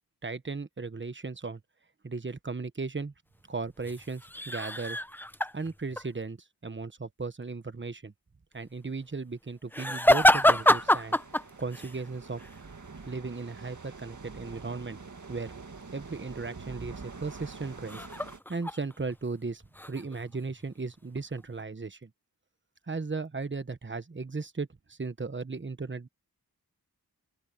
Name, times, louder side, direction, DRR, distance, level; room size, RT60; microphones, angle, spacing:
voice 1, 0.2-1.6 2.0-3.1 3.5-5.0 5.5-8.1 8.5-11.2 11.6-12.4 13.1-15.0 15.3-15.5 15.9-18.1 18.5-19.6 19.9-22.1 22.9-26.1, right 4 dB, 30° right, 1.1 m, -36 dB
sound 1, 3.8-6.1 9.7-12.0 12.4-12.6 17.9-19.2 19.5-20.6 21.2-21.6, left 1 dB, 5° left, 0.7 m, -26 dB
sound 2, 10.1-18.4, right 4 dB, 50° right, 2.0 m, -46 dB
open air
wide cardioid pair, 65°, 38 cm